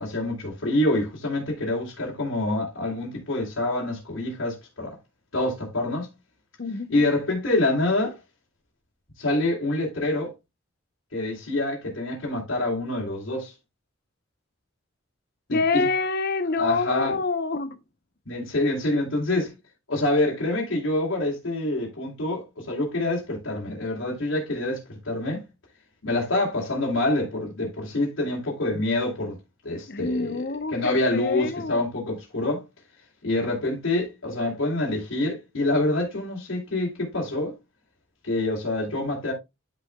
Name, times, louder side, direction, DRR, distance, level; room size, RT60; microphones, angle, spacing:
voice 1, 0.0-4.9 5.3-6.1 6.9-8.2 9.2-10.3 11.1-13.5 15.5-15.9 16.6-17.1 18.3-19.5 19.9-25.5 26.0-29.4 29.6-30.4 30.7-32.6 33.2-37.5 38.2-39.3, left 2 dB, 85° left, 3.1 m, -26 dB
voice 2, 6.6-7.0 15.5-17.8 29.9-31.8, left 4 dB, 50° left, 0.8 m, -26 dB
13.0 x 5.0 x 2.2 m
head